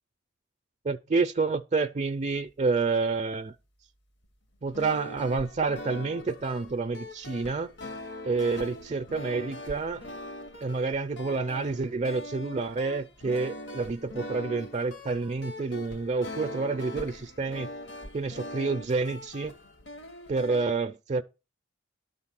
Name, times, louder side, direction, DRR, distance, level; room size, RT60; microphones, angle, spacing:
voice 1, 0.8-3.5 4.6-7.7 8.2-10.0 10.6-17.7 18.1-19.5 20.3-21.2, right 4 dB, 35° right, 0.4 m, -29 dB
sound 1, 4.6-20.7, left 1 dB, 55° left, 1.0 m, -42 dB
11.5 x 4.0 x 7.4 m
head